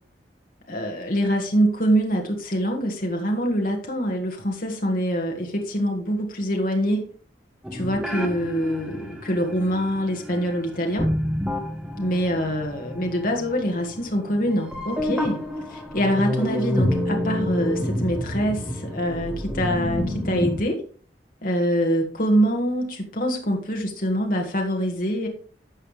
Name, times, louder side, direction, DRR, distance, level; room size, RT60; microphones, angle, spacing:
voice 1, 0.7-7.1 7.7-11.1 12.0-15.4 15.7-20.8 21.4-25.3, equal, 50° left, 2 dB, 1.7 m, -24 dB
sound 1, 7.6-20.6, equal, 5° right, 1.4 m, -29 dB
12.0 x 6.9 x 3.3 m, 0.41 s
head